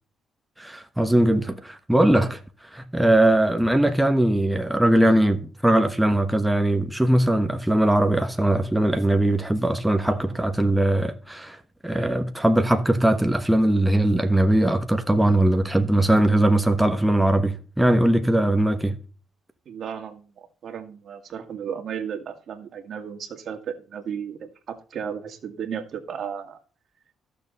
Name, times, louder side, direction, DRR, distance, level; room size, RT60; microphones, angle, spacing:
voice 1, 0.6-2.4 2.7-11.6 11.8-19.0, right 1 dB, 5° right, 1.2 m, -20 dB
voice 2, 10.1-10.4 19.7-26.6, right 7 dB, 60° right, 2.0 m, -34 dB
14.5 x 6.8 x 4.1 m
cardioid pair, 90°, 0 cm